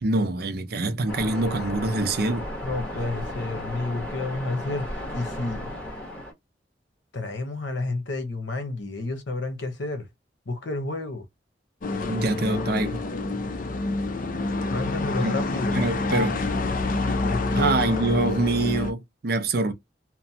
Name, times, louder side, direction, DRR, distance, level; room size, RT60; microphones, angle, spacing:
voice 1, 0.0-2.5 12.1-13.0 15.2-15.4 15.7-16.4 17.5-19.7, right 2 dB, 55° right, 0.5 m, -25 dB
Waves surf, 1.1-6.3, left 1 dB, 5° left, 1.3 m, -34 dB
voice 2, 2.6-5.7 7.1-10.1 10.5-11.3 14.7-15.8 16.1-16.6 17.2-17.8, left 2 dB, 80° left, 0.9 m, -30 dB
sound 1, 11.8-18.9, left 2 dB, 45° left, 0.5 m, -27 dB
2.9 x 2.2 x 2.7 m
head